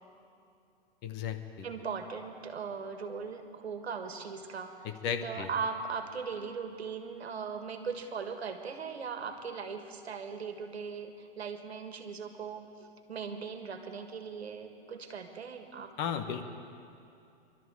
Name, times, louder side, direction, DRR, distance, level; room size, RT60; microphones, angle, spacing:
voice 1, 1.0-1.7 4.8-5.5 16.0-16.5, left 7 dB, 35° left, 7 dB, 1.2 m, -35 dB
voice 2, 1.6-4.7 5.2-15.9, right 5 dB, 85° right, 7 dB, 1.7 m, -39 dB
23.0 x 12.5 x 4.8 m, 2.6 s
hypercardioid pair, 120°, 31 cm